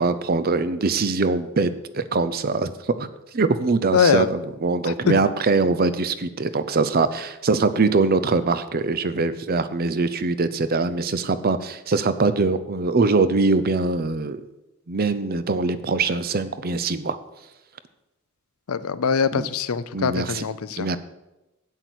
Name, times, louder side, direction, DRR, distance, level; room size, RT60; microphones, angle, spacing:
voice 1, 0.0-2.7 3.0-3.1 3.3-14.4 14.9-17.2 19.3-19.5 19.9-20.5 20.8-21.0, right 3 dB, 45° right, 13 dB, 0.6 m, -22 dB
voice 2, 3.9-4.3 4.9-5.0 18.7-20.9, left 6 dB, 90° left, 15 dB, 0.6 m, -22 dB
8.4 x 8.1 x 6.2 m, 0.98 s
head